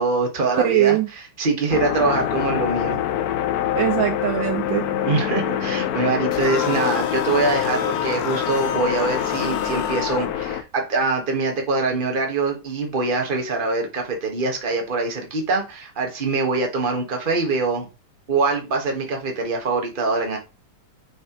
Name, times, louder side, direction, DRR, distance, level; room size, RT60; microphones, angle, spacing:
voice 1, 0.0-3.0 5.0-17.9 18.3-20.4, right 3 dB, 25° right, 1.4 m, -24 dB
voice 2, 0.6-1.1 3.7-4.9, right 13 dB, 70° right, 1.4 m, -21 dB
sound 1, 1.7-10.6, left 10 dB, 85° left, 0.8 m, -25 dB
sound 2, 6.3-10.3, left 7 dB, 65° left, 1.5 m, -29 dB
6.4 x 5.6 x 3.1 m
omnidirectional pair, 2.4 m